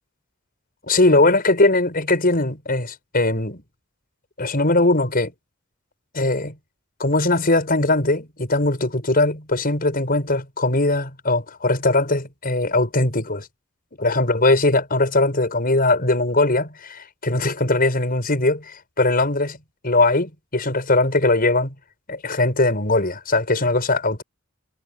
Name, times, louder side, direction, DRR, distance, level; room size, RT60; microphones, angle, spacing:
voice 1, 0.8-3.6 4.4-5.3 6.1-6.6 7.0-13.5 14.0-19.6 19.8-21.7 22.1-24.2, left 2 dB, 45° left, 6.5 m, -20 dB
head